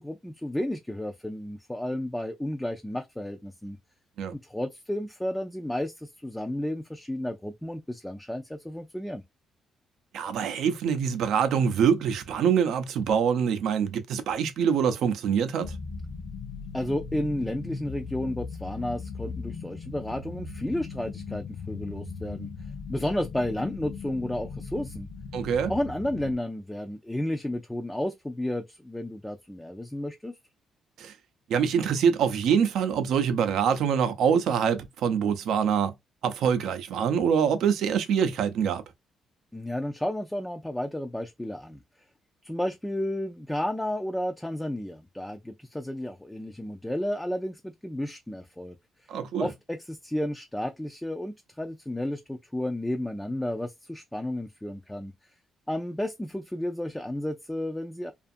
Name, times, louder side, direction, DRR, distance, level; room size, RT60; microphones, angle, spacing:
voice 1, 0.0-3.8 4.3-9.2 16.7-22.5 22.9-25.1 25.7-30.3 39.5-41.8 42.4-48.8 49.4-55.1 55.7-58.1, left 1 dB, 5° left, 0.3 m, -32 dB
voice 2, 10.1-15.7 25.3-25.7 31.0-31.1 31.5-35.9 36.2-38.8 49.1-49.5, right 7 dB, 80° right, 0.5 m, -25 dB
sound 1, 15.6-26.3, left 5 dB, 70° left, 0.6 m, -38 dB
2.6 x 2.4 x 2.5 m
cardioid pair, 125°, 0 cm